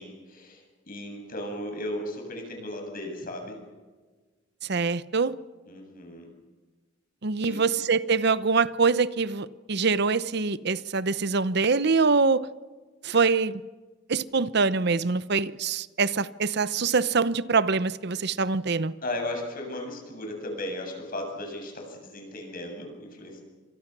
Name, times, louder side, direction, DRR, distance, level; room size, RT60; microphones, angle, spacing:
voice 1, 0.0-3.6 5.7-6.3 7.4-7.6 19.0-23.4, left 1 dB, 50° left, 7.9 m, -36 dB
voice 2, 4.6-5.3 7.2-12.5 13.0-13.6 14.1-18.9, right 4 dB, 60° right, 0.8 m, -24 dB
28.0 x 25.5 x 6.1 m
head